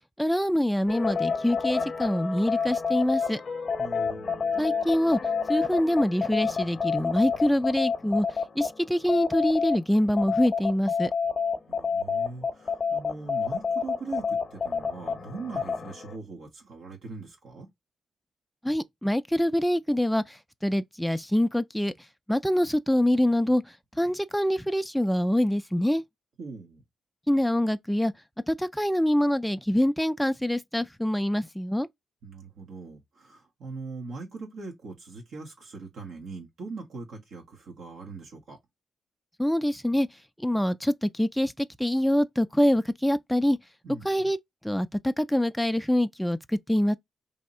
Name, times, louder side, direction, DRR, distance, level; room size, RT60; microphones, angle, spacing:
voice 1, 0.2-3.4 4.6-5.2 5.5-11.1 18.6-21.9 22.3-26.0 27.3-28.1 28.5-31.9 39.4-40.1 40.4-43.6 44.0-44.4 44.6-47.0, equal, ahead, 0.4 m, -25 dB
sound 1, 0.9-9.8 10.2-16.2, left 5 dB, 50° left, 0.7 m, -29 dB
voice 2, 3.8-4.5 11.7-17.7 26.4-26.8 32.2-38.6 43.8-44.2, right 3 dB, 80° right, 1.4 m, -41 dB
3.4 x 2.8 x 4.2 m
cardioid pair, 90°, 0 cm